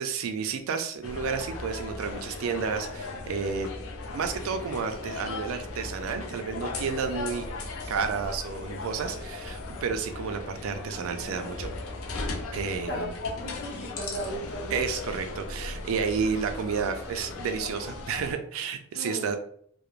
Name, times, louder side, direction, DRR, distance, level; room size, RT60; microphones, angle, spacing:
voice 1, 0.0-3.7 4.1-7.5 7.9-11.7 12.5-13.1 14.7-19.4, right 6 dB, 75° right, 7 dB, 0.3 m, -31 dB
sound 1, 1.0-18.3, left 3 dB, 80° left, 0.5 m, -37 dB
voice 2, 12.9-14.8 18.9-19.3, equal, 50° left, -3 dB, 0.9 m, -35 dB
2.4 x 2.0 x 3.0 m, 0.62 s
head